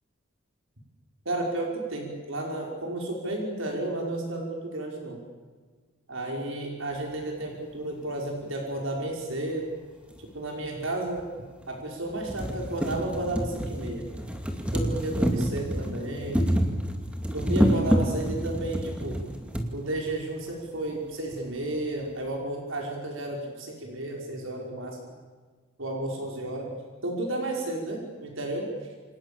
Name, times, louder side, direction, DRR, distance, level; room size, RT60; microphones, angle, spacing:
voice 1, 1.3-5.2 6.1-9.8 10.2-11.2 11.7-14.1 14.7-16.4 17.3-19.2 19.7-25.0 25.8-26.8 27.0-28.7, right 2 dB, 75° right, 0 dB, 5.8 m, -32 dB
sound 1, 10.1-10.2 11.2-11.3 11.7-11.8 12.1-19.7 20.6-20.7 20.9-21.0, equal, 5° right, 2.6 m, -28 dB
29.0 x 27.0 x 7.3 m, 1.4 s
head